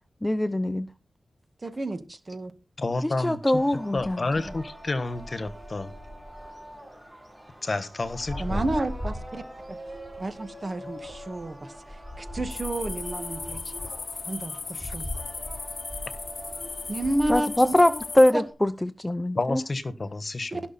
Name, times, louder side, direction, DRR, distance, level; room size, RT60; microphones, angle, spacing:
voice 1, 0.2-0.9 3.2-4.2 17.3-19.6, left 1 dB, 15° left, 12 dB, 0.7 m, -22 dB
voice 2, 1.6-2.5 8.4-9.4 9.7-9.8 10.2-13.7 14.3-15.1 16.9-17.7 18.3-18.4 20.5-20.6, right 1 dB, 40° right, 8 dB, 2.0 m, -31 dB
voice 3, 2.8-5.9 7.6-8.7 19.3-20.6, left 3 dB, 50° left, 12 dB, 1.4 m, -30 dB
sound 1, 3.4-18.5, equal, 10° right, 6.4 m, -40 dB
sound 2, 12.5-18.3, left 4 dB, 65° left, 0.9 m, -37 dB
16.5 x 6.3 x 4.3 m, 0.31 s
cardioid pair, 50°, 0 cm